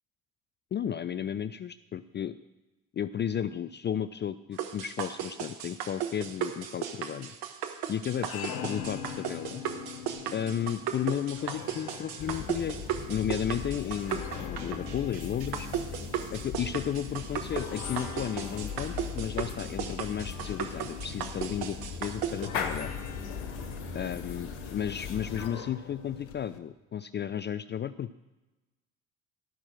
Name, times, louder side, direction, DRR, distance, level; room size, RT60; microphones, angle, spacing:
voice 1, 0.7-2.4 2.9-7.3 7.9-9.6 10.3-12.8 13.1-15.7 16.3-22.9 23.9-28.2, left 9 dB, 25° left, 15 dB, 0.4 m, -33 dB
sound 1, 4.6-22.5, right 9 dB, 65° right, 1.4 m, -36 dB
sound 2, 8.0-26.6, left 7 dB, 80° left, 1.1 m, -44 dB
sound 3, 12.2-25.5, left 6 dB, 65° left, 1.6 m, -39 dB
12.5 x 6.2 x 7.6 m, 1.1 s
hypercardioid pair, 55°, 41 cm